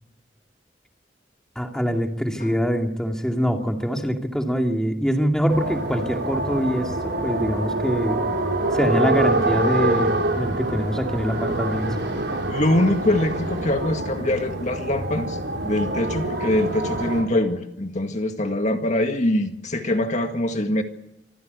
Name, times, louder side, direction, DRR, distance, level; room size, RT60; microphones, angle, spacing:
voice 1, 1.6-8.2 8.7-11.9, equal, 5° left, 3 dB, 2.4 m, -24 dB
sound 1, 5.5-17.2, right 2 dB, 85° right, 6.9 m, -26 dB
voice 2, 12.5-15.4 15.6-20.8, left 1 dB, 40° left, 5 dB, 1.9 m, -23 dB
26.0 x 15.0 x 8.2 m, 0.88 s
head